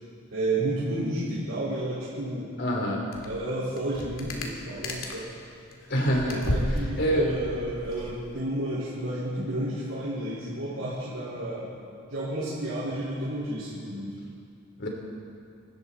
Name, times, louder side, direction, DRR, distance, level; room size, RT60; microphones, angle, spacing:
voice 1, 0.3-2.5 3.2-5.3 6.3-11.7 12.1-14.1, right 1 dB, 90° right, -12 dB, 4.2 m, -31 dB
voice 2, 2.6-3.0 5.9-6.4 7.0-7.3 14.8-14.9, equal, 60° left, 0 dB, 3.4 m, -25 dB
sound 1, 3.1-3.4 3.7-5.4 5.7-8.4, left 1 dB, 80° left, 2.2 m, -33 dB
25.5 x 13.5 x 4.1 m, 2.3 s
head